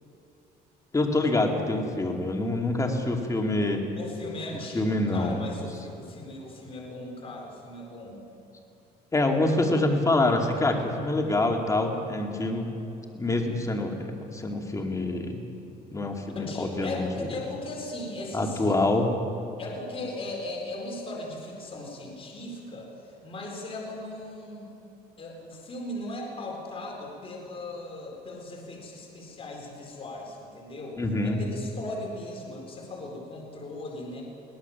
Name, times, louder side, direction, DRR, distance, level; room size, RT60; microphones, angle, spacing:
voice 1, 0.9-3.8 4.7-5.4 9.1-12.7 13.1-15.4 15.9-17.3 18.3-19.1 31.0-31.4, left 2 dB, 20° left, 2 dB, 2.7 m, -26 dB
voice 2, 3.9-8.2 16.3-18.7 19.6-24.7 25.2-34.2, left 2 dB, 35° left, -1 dB, 4.3 m, -38 dB
22.5 x 18.0 x 7.2 m, 2.9 s
cardioid pair, 110°, 17 cm